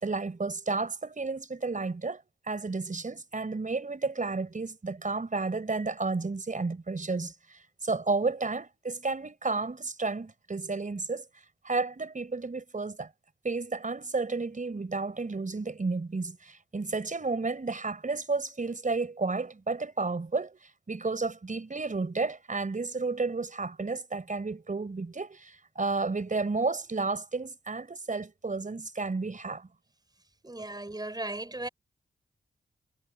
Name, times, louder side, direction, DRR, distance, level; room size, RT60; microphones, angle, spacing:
voice 1, 0.0-11.2 11.6-13.1 13.4-29.7, right 3 dB, 45° right, 4.8 m, -32 dB
voice 2, 30.4-31.7, right 2 dB, 20° right, 5.4 m, -36 dB
supercardioid pair, 45°, 19 cm